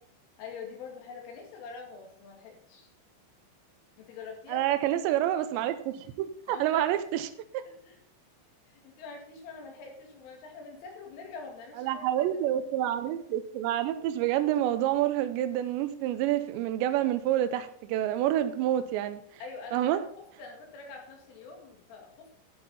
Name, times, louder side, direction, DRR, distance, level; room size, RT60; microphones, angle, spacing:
voice 1, 0.4-2.9 4.0-4.7 6.5-6.9 7.8-8.0 8.7-12.4 19.4-22.3, left 4 dB, 75° left, 1 dB, 4.7 m, -45 dB
voice 2, 4.5-7.3 7.5-7.6 11.8-19.2 19.7-20.0, right 12 dB, 80° right, 10 dB, 2.7 m, -28 dB
12.0 x 8.4 x 4.2 m, 0.63 s
omnidirectional pair, 5.8 m